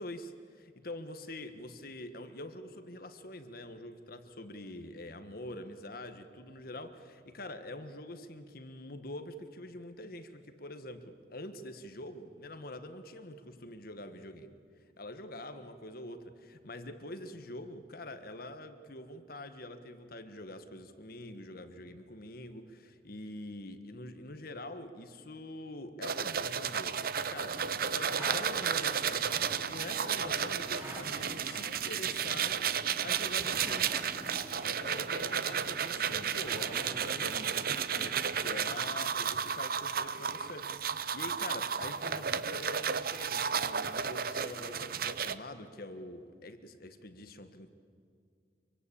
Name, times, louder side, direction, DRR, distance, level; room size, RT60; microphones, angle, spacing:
voice 1, 0.0-14.5 15.0-32.6 33.0-33.9 34.6-47.7, left 1 dB, 55° left, 9 dB, 1.5 m, -45 dB
sound 1, 26.0-45.4, right 7 dB, 55° right, 0.8 m, -33 dB
sound 2, 27.3-38.9, right 1 dB, 35° right, 4.5 m, -48 dB
sound 3, 28.0-28.4 30.6-31.0 33.2-34.0 35.9-37.0, right 1 dB, 15° right, 4.3 m, -46 dB
25.0 x 23.5 x 8.6 m, 2.3 s
head